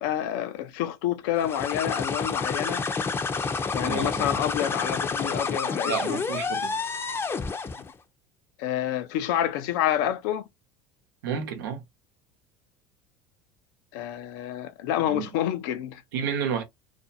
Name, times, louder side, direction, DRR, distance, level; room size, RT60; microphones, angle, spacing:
voice 1, 0.0-2.8 3.7-6.2 8.6-10.5 13.9-16.0, left 11 dB, 75° left, 0.5 m, -28 dB
sound 1, 1.4-7.9, left 4 dB, 20° left, 0.5 m, -29 dB
voice 2, 3.8-4.3 5.9-6.8 11.2-11.8 15.1-15.3 16.1-16.6, right 7 dB, 90° right, 0.8 m, -31 dB
2.5 x 2.1 x 2.6 m
supercardioid pair, 100°, 11 cm